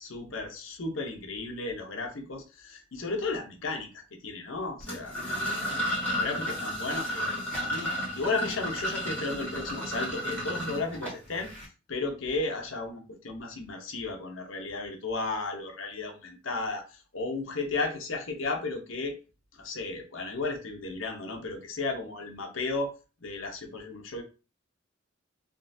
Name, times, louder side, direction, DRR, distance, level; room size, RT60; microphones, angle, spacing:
voice 1, 0.0-5.2 5.5-7.3 7.6-11.5 11.9-19.1 19.6-22.9 23.2-24.2, left 3 dB, 80° left, 3 dB, 0.8 m, -34 dB
sound 1, 4.8-11.7, equal, 10° left, 1.3 m, -32 dB
3.7 x 2.4 x 2.6 m, 0.32 s
head